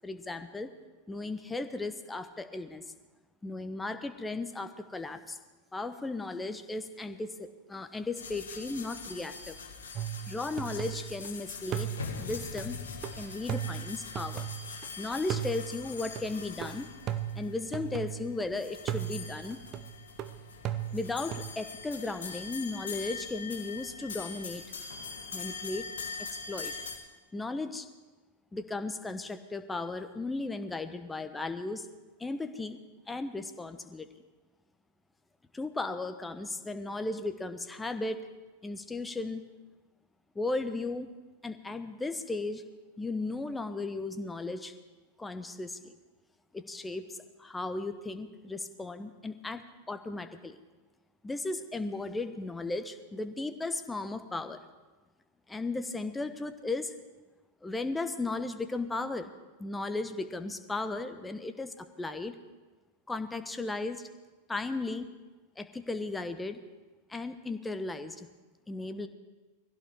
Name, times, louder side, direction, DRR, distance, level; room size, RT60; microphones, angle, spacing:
voice 1, 0.0-0.7 1.1-2.8 3.4-5.4 5.7-9.6 10.3-11.9 12.2-12.8 13.2-14.5 15.0-16.9 17.3-19.6 20.9-24.6 25.3-25.9 26.2-26.7 27.3-27.9 28.5-31.9 32.2-32.8 33.1-34.1 35.5-38.2 38.6-39.4 40.3-41.1 41.4-42.6 43.0-44.7 45.2-45.9 46.5-50.6 51.2-54.6 55.5-57.0 57.6-59.3 59.6-62.4 63.1-64.1 64.5-65.1 65.6-66.6 67.1-68.3 68.7-69.1, left 3 dB, 10° left, 9 dB, 1.0 m, -36 dB
sound 1, 8.2-27.0, left 5 dB, 65° left, 2.0 m, -43 dB
sound 2, 9.9-11.3 11.7-14.9 15.3-18.5 18.9-21.5, right 11 dB, 35° right, 0.7 m, -37 dB
21.5 x 16.0 x 3.6 m, 1.2 s
figure-of-eight pair, 90°, 0 cm